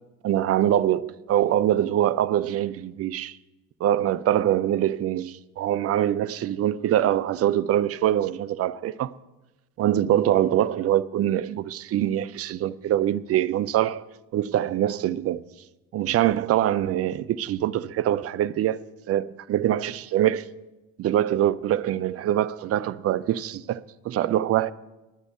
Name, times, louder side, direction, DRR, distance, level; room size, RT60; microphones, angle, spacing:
voice 1, 0.2-3.4 3.8-9.1 9.8-14.0 14.3-15.4 15.9-18.8 19.1-20.5 21.0-24.7, right 12 dB, 35° right, 0.5 m, -24 dB
10.0 x 6.4 x 8.4 m
hypercardioid pair, 60°, 43 cm